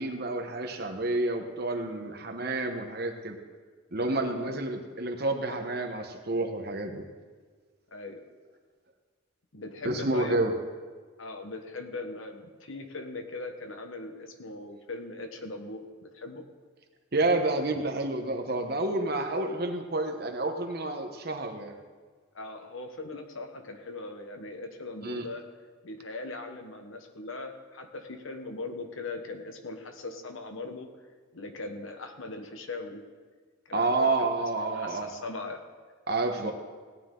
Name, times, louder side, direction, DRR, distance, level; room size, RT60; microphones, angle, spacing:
voice 1, 0.0-3.4 3.9-7.0 9.8-10.5 17.1-21.7 25.0-25.3 33.7-35.1 36.1-36.5, right 2 dB, 45° right, 4 dB, 1.1 m, -29 dB
voice 2, 4.0-4.6 7.9-8.2 9.5-10.5 11.2-16.4 22.3-25.4 25.8-30.9 31.3-33.0 33.7-35.6 36.4-36.5, left 2 dB, 70° left, 5 dB, 1.2 m, -40 dB
17.0 x 9.6 x 3.8 m, 1.5 s
head